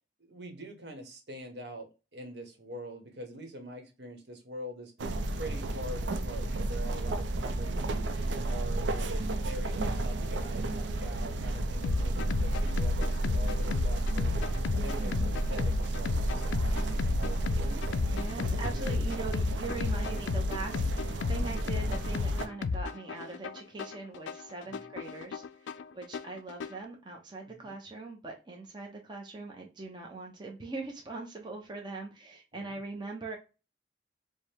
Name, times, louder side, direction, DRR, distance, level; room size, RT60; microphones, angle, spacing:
voice 1, 0.2-4.9 5.3-8.1 8.5-14.4 14.7-19.1 24.7-24.9 27.4-27.8 32.5-32.8, equal, 70° right, 1.1 m, -45 dB
sound 1, 5.0-22.5, right 2 dB, 90° right, 0.5 m, -32 dB
sound 2, 11.8-26.8, left 4 dB, 85° left, 0.3 m, -34 dB
voice 2, 14.8-15.4 18.0-33.4, right 3 dB, 25° right, 0.6 m, -41 dB
4.7 x 2.1 x 3.3 m
head